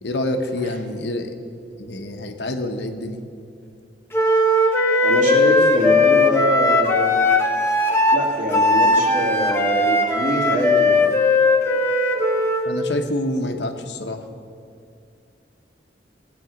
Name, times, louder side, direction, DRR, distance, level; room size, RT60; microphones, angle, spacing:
voice 1, 0.0-1.3 1.8-3.2 12.6-14.2, left 1 dB, 70° left, 5 dB, 1.1 m, -27 dB
Wind instrument woodwind instrument, 4.1-12.7, left 2 dB, 15° left, 1.1 m, -18 dB
voice 2, 5.0-7.2 8.1-11.0, equal, 45° right, -4 dB, 3.1 m, -24 dB
19.5 x 8.3 x 5.2 m, 2.4 s
head